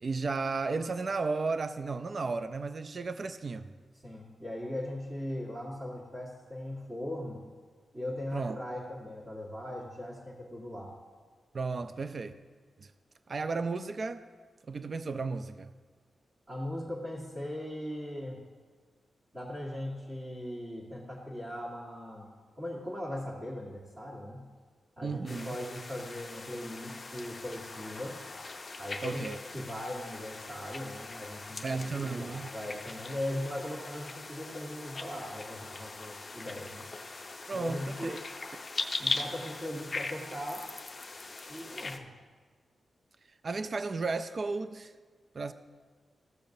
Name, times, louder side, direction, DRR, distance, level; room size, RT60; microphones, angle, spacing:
voice 1, 0.0-3.7 8.3-8.6 11.5-12.3 12.8-12.9 13.3-14.2 14.7-15.7 25.0-25.6 29.0-29.4 31.6-32.5 37.5-38.2 43.4-44.9 45.3-45.5, right 4 dB, 40° right, 11 dB, 0.3 m, -34 dB
voice 2, 4.0-7.4 7.9-10.9 16.5-18.4 19.3-22.3 22.6-24.4 25.0-28.2 28.8-31.6 31.9-36.8 37.5-38.2 39.0-40.7 41.5-42.1, left 1 dB, 25° right, -9 dB, 1.5 m, -39 dB
sound 1, 25.3-42.0, left 3 dB, 35° left, 0.6 m, -40 dB
14.5 x 6.9 x 2.6 m, 1.5 s
wide cardioid pair, 130°, 0 cm